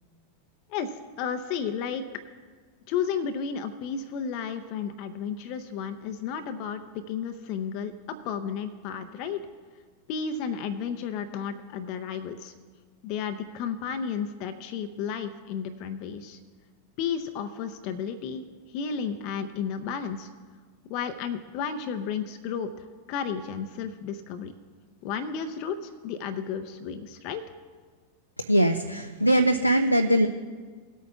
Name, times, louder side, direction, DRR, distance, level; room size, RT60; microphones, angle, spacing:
voice 1, 0.7-2.0 2.9-6.8 7.1-9.4 10.1-12.5 13.0-16.4 17.0-20.3 20.9-24.6 25.0-27.4, left 7 dB, 45° left, 8 dB, 0.6 m, -33 dB
voice 2, 28.5-30.3, right 1 dB, 90° left, 6 dB, 0.4 m, -21 dB
19.5 x 8.4 x 2.3 m, 1.5 s
figure-of-eight pair, 90°, 0 cm